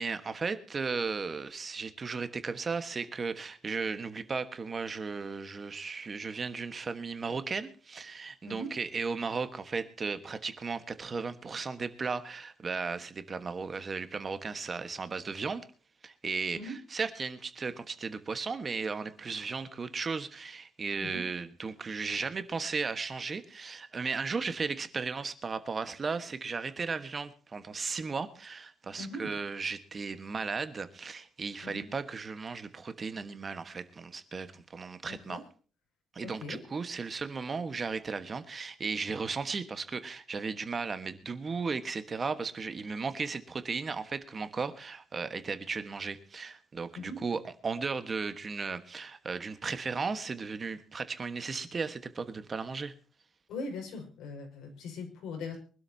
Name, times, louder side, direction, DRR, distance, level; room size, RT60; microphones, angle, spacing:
voice 1, 0.0-15.6 16.0-35.4 36.1-52.9, right 4 dB, 25° right, 10 dB, 1.3 m, -35 dB
voice 2, 29.0-29.3 31.6-31.8 35.1-35.4 36.2-36.6 47.0-47.2 53.5-55.6, left 2 dB, 85° left, 3 dB, 5.6 m, -40 dB
24.0 x 12.5 x 2.8 m, 0.39 s
cardioid pair, 160°, 0 cm